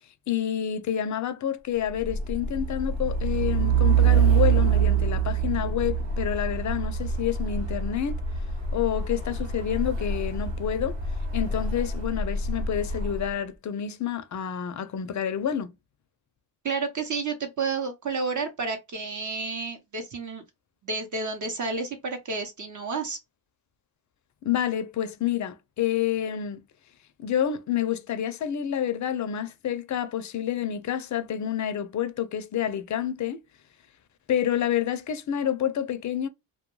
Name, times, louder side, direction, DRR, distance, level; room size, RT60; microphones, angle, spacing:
voice 1, 0.3-8.2 8.7-11.0 11.3-15.7 24.4-26.6 27.2-33.4 34.3-36.3, left 10 dB, 40° left, 0.5 m, -28 dB
Truck, 1.9-13.3, right 6 dB, 75° right, 1.0 m, -25 dB
voice 2, 16.6-20.4 20.8-23.2, right 4 dB, 40° right, 0.8 m, -30 dB
2.2 x 2.2 x 3.0 m
cardioid pair, 85°, 46 cm